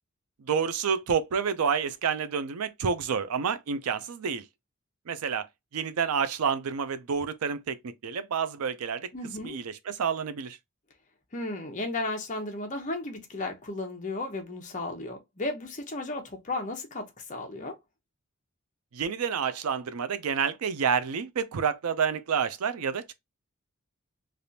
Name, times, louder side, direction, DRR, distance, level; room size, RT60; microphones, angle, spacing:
voice 1, 0.4-4.4 5.1-5.5 5.7-9.1 9.4-10.6 18.9-23.1, right 6 dB, 90° right, 0.5 m, -29 dB
voice 2, 9.1-9.6 11.3-17.7, left 2 dB, 35° left, 0.7 m, -34 dB
3.3 x 2.5 x 2.7 m
head